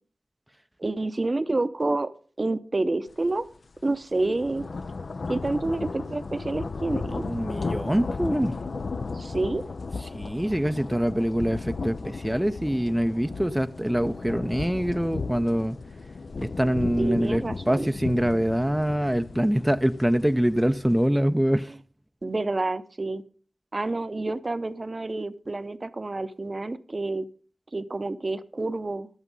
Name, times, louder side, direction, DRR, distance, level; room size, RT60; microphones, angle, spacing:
voice 1, 0.8-2.1 2.4-3.5 3.8-4.6 5.3-7.2 9.1-9.6 17.0-17.9 22.2-23.2 23.7-27.3 27.7-29.1, right 2 dB, 45° right, 0.7 m, -28 dB
sound 1, 3.2-3.4 3.8-21.1, left 4 dB, 70° left, 0.5 m, -35 dB
voice 2, 7.2-8.6 10.1-15.8 16.4-21.7, equal, 10° right, 0.5 m, -24 dB
11.0 x 8.2 x 5.4 m
cardioid pair, 45°, 0 cm